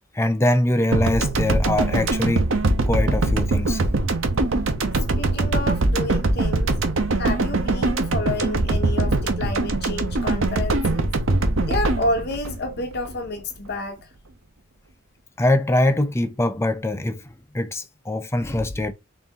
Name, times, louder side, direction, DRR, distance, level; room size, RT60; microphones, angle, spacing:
voice 1, 0.1-2.5 2.9-3.8 15.4-18.9, left 1 dB, 15° left, 0.5 m, -23 dB
sound 1, 0.9-13.4, right 2 dB, 85° right, 0.8 m, -22 dB
voice 2, 5.2-6.7 7.2-11.1 11.6-14.1, left 2 dB, 55° left, 0.7 m, -29 dB
4.0 x 2.6 x 3.5 m
head